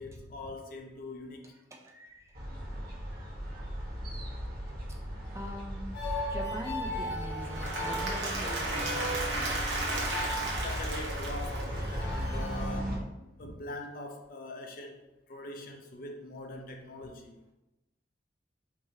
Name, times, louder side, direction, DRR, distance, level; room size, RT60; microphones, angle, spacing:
voice 1, 0.0-1.5 10.6-15.0 15.3-17.4, left 2 dB, 50° left, 2 dB, 0.5 m, -43 dB
voice 2, 1.7-3.9 5.3-9.5, equal, 15° right, 0 dB, 0.5 m, -44 dB
sound 1, 2.3-13.0, equal, 50° right, 1.1 m, -37 dB
sound 2, 5.9-12.8, left 1 dB, 90° left, 0.7 m, -38 dB
Applause / Crowd, 7.3-12.3, right 2 dB, 80° right, 0.9 m, -35 dB
4.6 x 2.5 x 2.7 m, 0.97 s
head